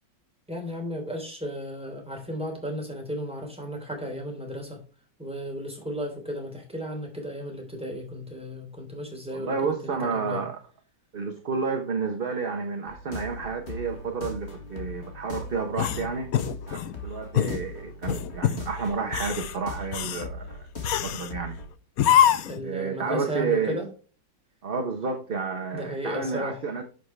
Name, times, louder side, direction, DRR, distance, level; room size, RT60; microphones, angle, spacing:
voice 1, 0.5-4.8 5.2-10.4 22.4-23.9 25.7-26.6, equal, 5° right, 3.3 m, -34 dB
voice 2, 9.3-10.6 11.1-16.3 16.7-20.7 21.0-21.6 22.6-23.8 24.6-26.8, right 5 dB, 40° right, 0.9 m, -30 dB
sound 1, 12.9-21.7, left 2 dB, 35° left, 2.2 m, -39 dB
sound 2, 15.7-16.9 17.3-17.6 18.1-18.6 19.0-19.5 19.9-20.3 20.8-21.3 22.0-22.6, left 10 dB, 65° left, 1.0 m, -24 dB
10.5 x 6.2 x 3.3 m
omnidirectional pair, 2.0 m